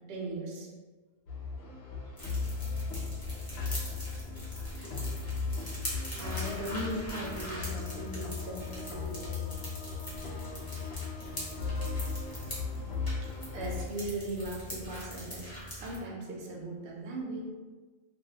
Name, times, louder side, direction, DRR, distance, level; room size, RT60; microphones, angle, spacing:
voice 1, 0.1-0.7 13.2-17.5, right 2 dB, 60° right, -2 dB, 0.6 m, -38 dB
sound 1, 1.3-13.8, left 5 dB, 65° left, 0.7 m, -37 dB
sound 2, 2.2-16.0, equal, 25° left, 0.5 m, -42 dB
voice 2, 6.2-9.5, equal, 80° right, -2 dB, 1.1 m, -39 dB
2.4 x 2.2 x 2.7 m, 1.4 s
omnidirectional pair, 1.5 m